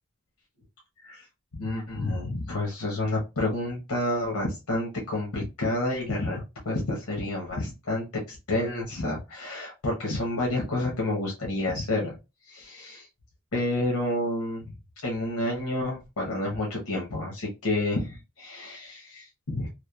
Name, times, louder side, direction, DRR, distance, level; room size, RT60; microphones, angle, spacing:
voice 1, 1.5-12.1 12.5-13.1 13.5-14.7 15.0-19.7, left 2 dB, 85° left, -2 dB, 1.0 m, -29 dB
3.0 x 2.3 x 2.3 m, 0.26 s
head